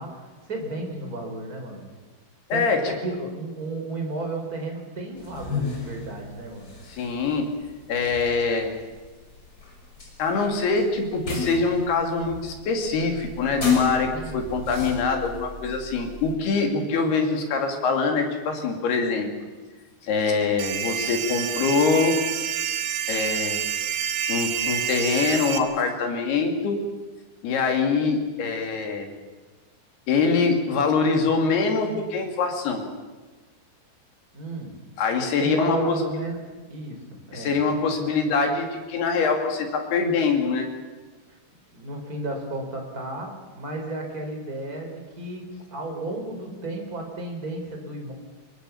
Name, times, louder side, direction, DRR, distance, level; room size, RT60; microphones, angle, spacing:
voice 1, 0.0-1.8 2.5-2.6 3.0-6.7 14.1-14.4 20.4-20.6 34.3-34.8 35.4-37.6 41.3-41.4 41.7-48.1, right 2 dB, 20° right, 3 dB, 3.9 m, -33 dB
voice 2, 2.5-2.9 6.9-7.4 7.9-8.7 10.2-19.3 20.0-22.2 23.1-23.6 24.3-26.8 27.4-29.1 30.1-32.9 35.0-36.0 37.3-40.7, left 4 dB, 60° left, 4 dB, 4.2 m, -24 dB
sound 1, 5.2-16.3, left 3 dB, 20° left, 5.5 m, -34 dB
sound 2, 20.6-25.6, right 8 dB, 85° right, 4.0 m, -28 dB
25.0 x 21.0 x 7.1 m, 1.3 s
omnidirectional pair, 5.7 m